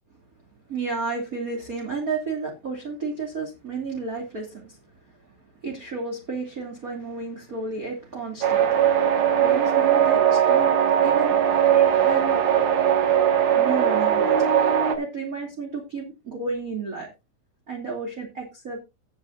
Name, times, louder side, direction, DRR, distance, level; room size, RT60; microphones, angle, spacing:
voice 1, 0.7-5.3 5.6-12.6 13.5-14.5 15.0-17.1 17.7-18.8, right 4 dB, 25° right, 1 dB, 2.0 m, -32 dB
sound 1, 8.4-15.0, right 9 dB, 65° right, 1.7 m, -20 dB
17.5 x 8.0 x 2.5 m, 0.25 s
omnidirectional pair, 5.5 m